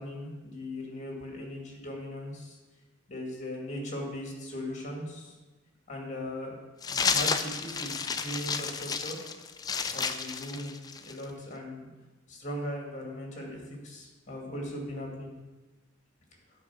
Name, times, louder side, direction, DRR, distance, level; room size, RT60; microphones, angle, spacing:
voice 1, 0.0-2.6 3.1-5.3 5.9-6.5 6.9-9.2 9.9-11.9 12.3-15.3, left 1 dB, 35° left, -1 dB, 2.2 m, -38 dB
sound 1, 6.8-11.2, left 5 dB, 20° left, 0.3 m, -31 dB
9.3 x 4.8 x 6.1 m, 1.2 s
head